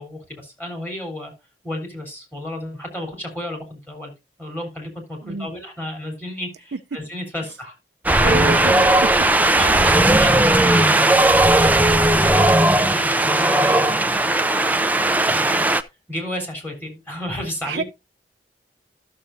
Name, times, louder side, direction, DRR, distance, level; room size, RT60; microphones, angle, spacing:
voice 1, 0.0-1.3 1.6-4.1 4.4-7.8 8.1-8.4 9.6-14.7 15.3-15.7 16.1-17.8, left 1 dB, 10° left, 3.5 m, -32 dB
Wind, 8.1-15.8, right 2 dB, 10° right, 0.5 m, -17 dB
voice 2, 8.2-9.3 9.6-9.9 15.4-15.7 17.6-17.8, right 4 dB, 70° right, 0.5 m, -29 dB
13.0 x 6.9 x 2.6 m
head